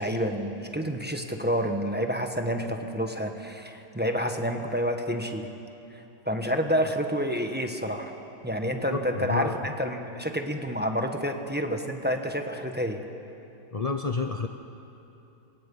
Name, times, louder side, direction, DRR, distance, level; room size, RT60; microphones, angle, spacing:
voice 1, 0.0-5.5 5.9-8.1 8.4-13.0, equal, 5° right, 4 dB, 1.1 m, -29 dB
voice 2, 8.7-9.6 13.7-14.5, left 4 dB, 55° left, 5 dB, 0.4 m, -30 dB
28.5 x 24.0 x 5.5 m, 2.9 s
omnidirectional pair, 1.9 m